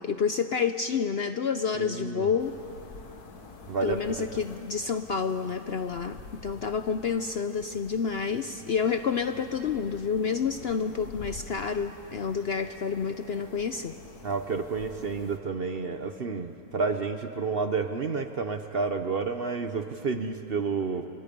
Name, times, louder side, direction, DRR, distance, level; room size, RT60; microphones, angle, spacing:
voice 1, 0.0-2.5 3.8-13.9, left 6 dB, 55° left, 8 dB, 0.7 m, -29 dB
voice 2, 1.8-2.3 3.7-4.4 14.2-21.1, right 4 dB, 45° right, 8 dB, 0.9 m, -30 dB
sound 1, 2.4-15.4, left 4 dB, 85° left, 2.1 m, -47 dB
29.5 x 25.5 x 5.3 m, 2.8 s
omnidirectional pair, 1.6 m